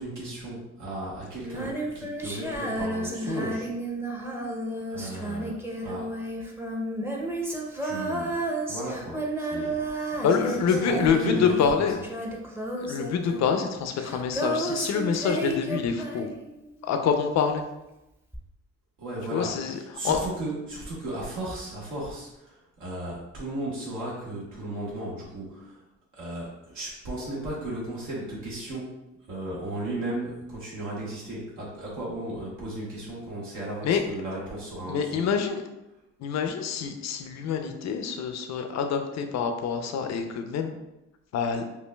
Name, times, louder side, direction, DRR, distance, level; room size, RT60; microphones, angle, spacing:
voice 1, 0.0-3.7 4.9-5.5 5.8-6.1 7.8-8.4 8.7-10.2 10.5-12.0 19.0-25.8 26.1-28.9 29.3-35.4, right 1 dB, 75° right, -6 dB, 1.3 m, -35 dB
Female singing, 1.4-16.8 18.3-18.4, right 1 dB, 10° right, 0.6 m, -32 dB
voice 2, 10.2-12.0 12.8-16.3 16.8-17.6 19.3-19.8 20.0-20.2 33.8-34.0 34.9-35.6 36.2-40.7 41.3-41.6, left 6 dB, 60° left, 6 dB, 0.5 m, -26 dB
5.2 x 2.5 x 2.2 m, 0.94 s
cardioid pair, 90°, 30 cm